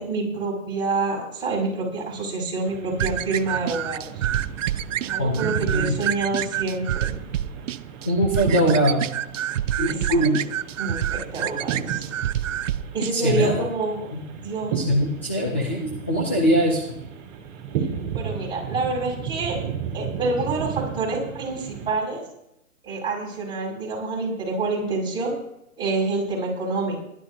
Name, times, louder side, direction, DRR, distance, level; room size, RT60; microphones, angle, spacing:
voice 1, 0.0-4.3 5.0-7.2 9.9-10.2 10.8-12.0 12.9-14.8 18.1-19.6 19.9-22.2 22.8-25.3 25.8-27.0, right 3 dB, 10° right, -5 dB, 5.9 m, -27 dB
sound 1, 2.6-21.9, right 7 dB, 35° right, 3.3 m, -35 dB
sound 2, 3.0-13.1, right 11 dB, 60° right, 0.7 m, -28 dB
voice 2, 8.1-9.0 9.8-10.4 13.1-13.6 14.1-14.2 14.7-16.8, equal, 10° left, -2 dB, 0.3 m, -22 dB
20.5 x 12.0 x 2.8 m, 0.80 s
hypercardioid pair, 150°, 43 cm